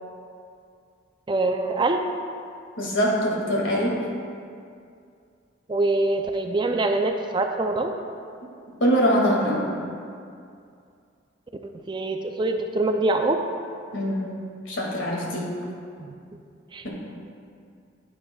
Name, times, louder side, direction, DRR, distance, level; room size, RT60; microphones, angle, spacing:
voice 1, 1.3-2.0 5.7-7.9 11.9-13.4 16.0-16.1 16.7-16.9, right 2 dB, 25° right, 5 dB, 0.4 m, -24 dB
voice 2, 2.8-4.0 8.8-9.6 13.9-14.3 14.7-15.5, equal, 70° left, -3 dB, 2.0 m, -23 dB
12.5 x 8.6 x 2.3 m, 2.4 s
head